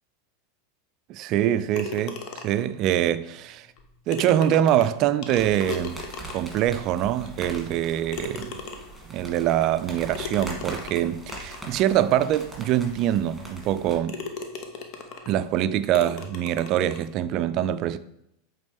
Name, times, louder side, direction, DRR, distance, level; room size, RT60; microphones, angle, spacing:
voice 1, 1.1-3.7 4.1-6.0 6.3-8.6 9.1-14.2 15.3-18.0, right 11 dB, 50° right, 0.4 m, -24 dB
sound 1, 1.7-2.7 3.8-3.9 4.1-6.7 7.3-7.4 8.1-9.1 10.1-11.7 12.4-12.5 13.0-13.1 13.6-13.8 14.1-15.4 15.9-17.1, left 5 dB, 50° left, 0.9 m, -37 dB
sound 2, 5.4-14.0, right 2 dB, 5° right, 2.4 m, -41 dB
8.1 x 3.7 x 3.5 m
hypercardioid pair, 90°, 0 cm